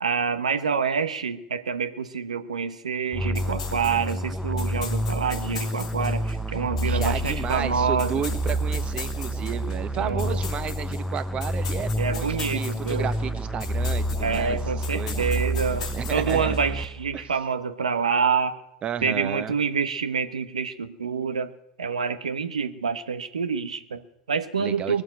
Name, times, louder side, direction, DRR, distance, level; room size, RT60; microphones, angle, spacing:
voice 1, 0.0-8.2 10.0-10.4 12.0-13.1 14.2-18.6 19.0-21.5 21.8-25.0, right 6 dB, 85° right, 9 dB, 1.2 m, -27 dB
sound 1, 3.1-17.2, equal, ahead, 0.8 m, -29 dB
sound 2, 3.3-16.8, left 7 dB, 75° left, 2.5 m, -41 dB
voice 2, 6.8-14.6 14.9-15.4 16.0-16.6 17.1-17.2 18.8-19.5 24.6-25.0, right 8 dB, 35° right, 10 dB, 1.2 m, -32 dB
21.0 x 7.2 x 9.3 m, 0.85 s
hypercardioid pair, 90°, 4 cm